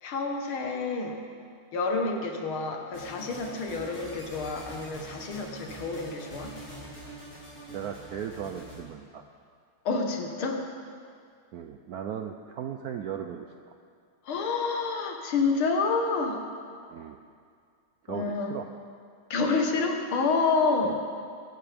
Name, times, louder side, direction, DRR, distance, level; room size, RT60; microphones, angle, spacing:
voice 1, 0.0-1.2 1.7-6.5 9.9-10.6 14.3-16.4 18.1-18.6 19.3-21.0, left 4 dB, 85° left, 3 dB, 2.2 m, -28 dB
sound 1, 2.9-8.8, right 1 dB, 45° left, 3.9 m, -44 dB
voice 2, 7.7-9.2 11.5-13.5 16.9-17.2 18.0-18.7 20.8-21.0, right 8 dB, 90° right, 5 dB, 0.8 m, -37 dB
21.5 x 11.5 x 3.5 m, 2.2 s
omnidirectional pair, 2.2 m